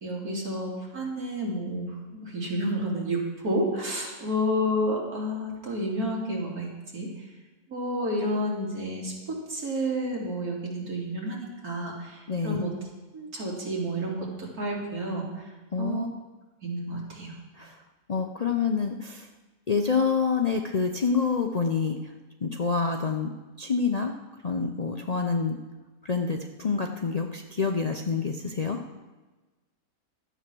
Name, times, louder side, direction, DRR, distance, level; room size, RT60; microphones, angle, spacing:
voice 1, 0.0-7.1 7.7-12.7 13.1-15.5 15.8-16.1 16.6-17.3, equal, 85° right, -3 dB, 3.2 m, -30 dB
voice 2, 12.3-12.6 15.7-16.1 17.6-17.8 18.1-19.3 19.7-22.0 22.4-24.1 24.4-25.6 26.0-28.8, left 5 dB, 50° left, 4 dB, 0.5 m, -27 dB
12.0 x 8.0 x 6.1 m, 1.2 s
omnidirectional pair, 1.5 m